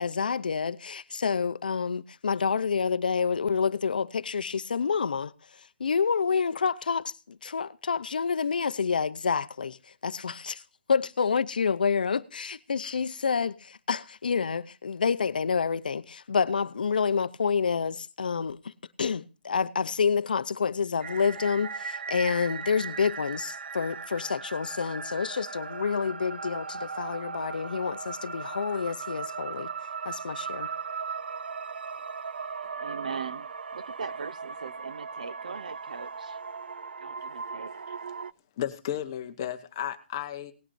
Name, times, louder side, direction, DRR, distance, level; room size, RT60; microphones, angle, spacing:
voice 1, 0.0-5.3 5.8-10.6 10.9-18.7 19.0-29.7 30.0-30.7, left 6 dB, 60° left, 0.6 m, -28 dB
sound 1, 21.0-38.3, right 5 dB, 75° right, 0.5 m, -38 dB
voice 2, 32.8-36.4 37.0-37.7, right 5 dB, 50° right, 0.9 m, -40 dB
voice 3, 38.6-40.5, left 10 dB, 20° left, 0.9 m, -33 dB
18.5 x 12.0 x 2.6 m
hypercardioid pair, 175°, 5 cm